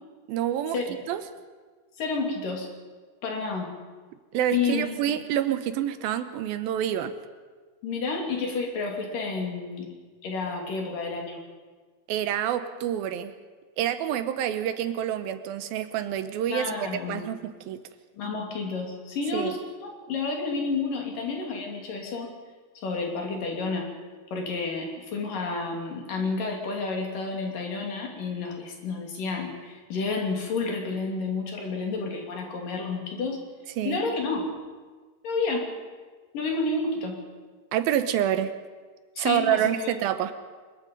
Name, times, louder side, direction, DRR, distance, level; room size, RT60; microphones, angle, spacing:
voice 1, 0.3-0.8 1.1-1.2 4.3-7.1 12.1-13.3 13.8-16.7 17.1-17.8 19.3-19.5 33.8-34.0 37.7-38.5 39.2-40.3, right 11 dB, 75° right, 11 dB, 2.6 m, -27 dB
voice 2, 2.0-2.7 3.2-3.7 4.5-5.1 7.8-9.9 10.2-11.4 16.5-17.3 18.2-22.3 22.8-23.9 24.3-33.4 33.9-34.5 35.2-35.7 36.3-37.2 39.2-39.9, left 4 dB, 60° left, 1 dB, 4.3 m, -30 dB
24.0 x 21.5 x 5.4 m, 1.4 s
omnidirectional pair, 4.5 m